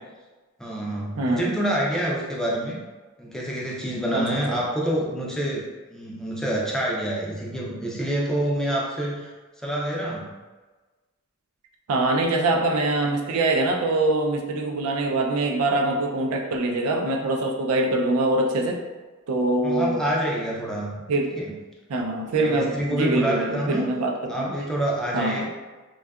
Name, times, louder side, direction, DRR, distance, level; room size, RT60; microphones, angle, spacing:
voice 1, 0.6-2.8 3.2-5.6 5.9-9.3 9.6-10.3 19.6-21.0 21.3-21.4 22.4-23.9 24.3-25.5, right 1 dB, 5° left, -4 dB, 0.3 m, -27 dB
voice 2, 1.2-1.5 4.1-4.6 11.9-18.8 19.3-20.0 21.1-21.3 21.9-24.5 25.1-25.5, right 2 dB, 85° right, 2 dB, 0.4 m, -24 dB
2.6 x 2.3 x 2.2 m, 1.2 s
head